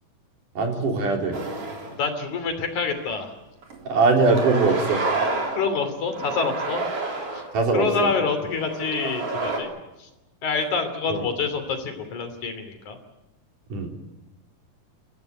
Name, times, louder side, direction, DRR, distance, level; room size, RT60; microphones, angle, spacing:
voice 1, 0.5-1.4 3.8-5.0 7.5-8.1 11.1-11.2 13.7-13.9, right 3 dB, 70° right, 2 dB, 4.9 m, -21 dB
sound 1, 1.3-2.0 2.5-2.6 3.6-3.8 4.2-5.7 6.1-7.5 8.3-9.6, right 3 dB, 45° right, 4.3 m, -29 dB
voice 2, 1.9-3.3 5.5-6.8 7.1-7.4 7.7-9.7 10.0-10.1 10.4-13.0, left 5 dB, 60° left, 7 dB, 4.2 m, -27 dB
29.0 x 14.0 x 9.2 m, 0.99 s
omnidirectional pair, 3.9 m